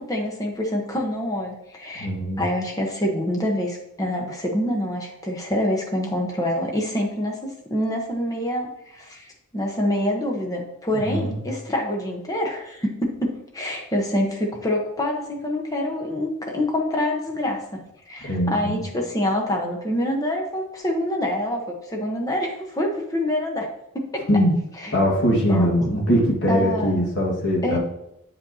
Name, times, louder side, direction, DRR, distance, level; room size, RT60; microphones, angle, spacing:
voice 1, 0.0-2.1 2.4-17.6 18.1-23.7 23.9-24.3 24.8-25.1 25.5-25.9 26.5-27.0 27.6-27.8, left 1 dB, 15° left, 0 dB, 1.0 m, -26 dB
voice 2, 2.0-2.4 10.9-11.4 18.2-18.8 24.3-24.6 24.9-27.8, equal, 50° left, -2 dB, 1.8 m, -21 dB
8.3 x 5.1 x 2.8 m, 0.81 s
head